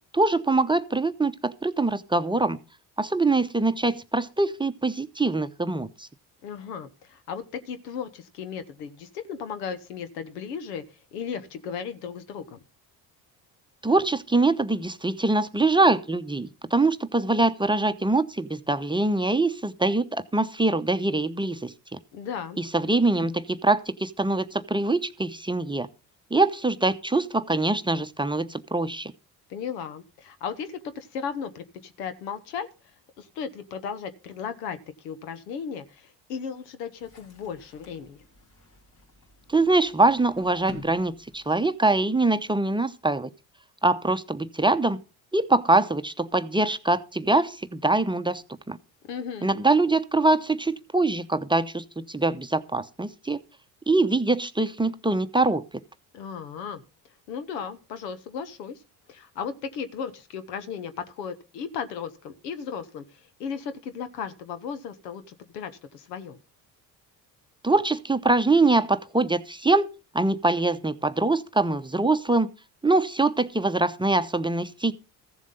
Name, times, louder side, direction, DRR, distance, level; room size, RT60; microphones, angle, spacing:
voice 1, 0.1-2.6 3.0-6.1 13.8-22.0 22.6-25.9 26.3-29.1 39.5-43.3 43.8-45.0 45.3-48.8 49.4-53.4 53.9-55.6 67.6-69.9 70.1-72.5 72.8-74.9, right 2 dB, 10° right, 0.8 m, -23 dB
voice 2, 6.4-12.6 22.1-22.6 29.5-32.7 33.2-38.2 49.0-49.5 56.1-56.8 57.3-58.8 59.1-66.4, left 6 dB, 85° left, 1.1 m, -36 dB
sound 1, 37.0-42.0, left 5 dB, 50° left, 3.4 m, -49 dB
14.5 x 7.3 x 5.4 m
hypercardioid pair, 55°, 48 cm